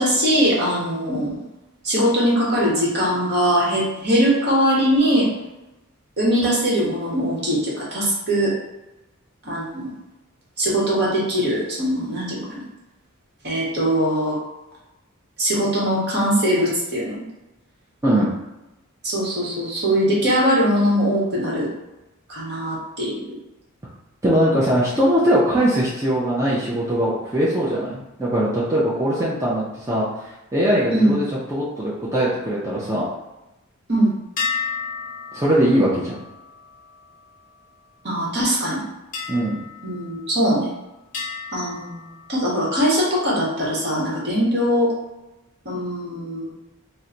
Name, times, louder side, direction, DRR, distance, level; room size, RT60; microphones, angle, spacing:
voice 1, 0.0-1.4 1.8-5.3 6.2-8.5 9.4-9.9 10.6-12.6 13.4-14.4 15.4-17.2 19.0-21.7 22.3-23.2 30.9-31.2 33.9-34.1 38.0-38.8 39.8-40.7 41.5-42.0 42.3-44.9 45.6-46.5, equal, 50° right, -5 dB, 1.2 m, -21 dB
voice 2, 24.2-30.1 30.5-31.2 31.5-33.1 35.3-36.2 39.3-39.6, equal, 15° right, -8 dB, 0.5 m, -20 dB
sound 1, 34.4-38.0 39.1-40.7 41.1-42.8, left 5 dB, 40° left, 0.6 m, -33 dB
2.9 x 2.2 x 3.8 m, 0.97 s
head